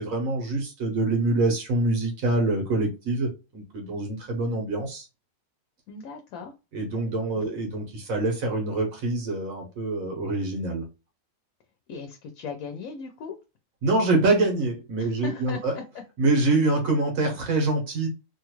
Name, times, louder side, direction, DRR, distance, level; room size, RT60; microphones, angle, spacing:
voice 1, 0.0-5.1 6.7-10.8 13.8-15.8 16.2-18.1, right 2 dB, 90° right, 1.5 m, -25 dB
voice 2, 5.9-6.5 7.3-7.5 11.9-13.4 15.0-16.0, left 5 dB, 85° left, 1.0 m, -38 dB
3.1 x 2.3 x 3.0 m
omnidirectional pair, 1.4 m